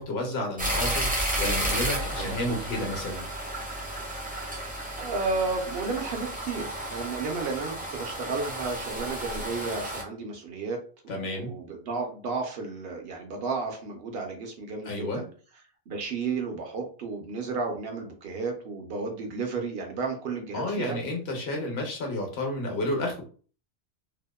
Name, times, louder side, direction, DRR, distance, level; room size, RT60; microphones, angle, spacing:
voice 1, 0.0-3.2 11.1-11.5 14.8-15.2 20.5-23.2, left 1 dB, 70° left, 1 dB, 1.0 m, -31 dB
sound 1, 0.6-10.0, right 1 dB, 15° right, 0.3 m, -32 dB
voice 2, 5.0-10.8 11.0-15.3 15.9-21.0, right 4 dB, 65° right, 3 dB, 0.8 m, -33 dB
2.7 x 2.1 x 2.2 m, 0.41 s
omnidirectional pair, 1.1 m